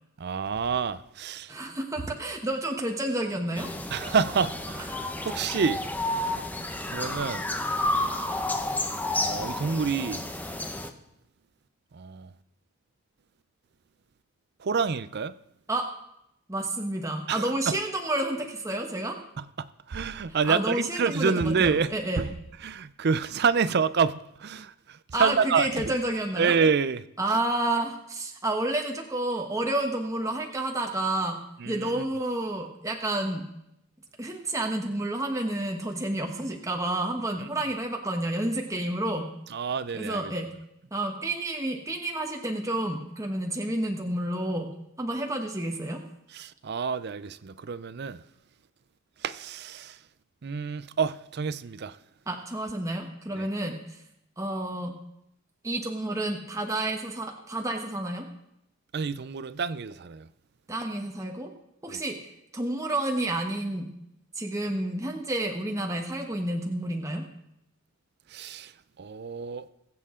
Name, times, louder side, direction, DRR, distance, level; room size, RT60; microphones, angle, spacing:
voice 1, 0.2-1.5 3.9-4.9 5.2-5.8 6.3-6.5 6.9-7.4 9.2-10.2 11.9-12.3 14.6-15.3 17.3-17.8 19.4-22.3 22.6-25.9 26.4-27.1 31.6-32.0 37.4-37.5 39.5-40.3 46.3-48.2 49.2-50.0 50.4-52.0 53.3-53.5 58.9-60.3 61.9-62.0 68.3-68.7 69.0-69.7, right 5 dB, 55° right, 0.5 m, -28 dB
voice 2, 1.5-3.7 5.0-5.1 15.7-15.8 16.5-19.1 20.5-22.2 25.1-26.5 27.2-31.4 31.6-33.4 34.2-39.3 39.9-40.5 40.9-44.7 45.0-46.0 52.3-54.0 54.4-55.0 55.6-58.3 60.7-61.5 61.8-62.2 62.5-63.9 64.4-67.2, right 1 dB, 15° right, 1.1 m, -30 dB
sound 1, 3.6-10.9, left 2 dB, 10° left, 0.7 m, -31 dB
22.0 x 7.7 x 3.7 m
head